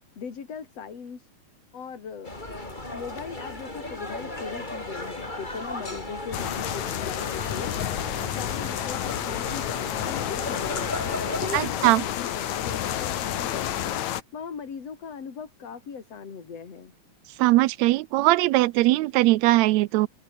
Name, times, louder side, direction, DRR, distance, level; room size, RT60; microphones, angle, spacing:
voice 1, 0.2-1.3 1.7-2.3 2.9-7.7 8.3-16.9, left 6 dB, 55° left, 4.3 m, -39 dB
sound 1, 2.2-11.7, left 2 dB, 15° left, 4.0 m, -35 dB
sound 2, 6.3-14.2, left 11 dB, 75° left, 2.7 m, -30 dB
voice 2, 11.5-12.0 17.4-20.1, right 18 dB, 80° right, 1.8 m, -20 dB
omnidirectional pair, 3.4 m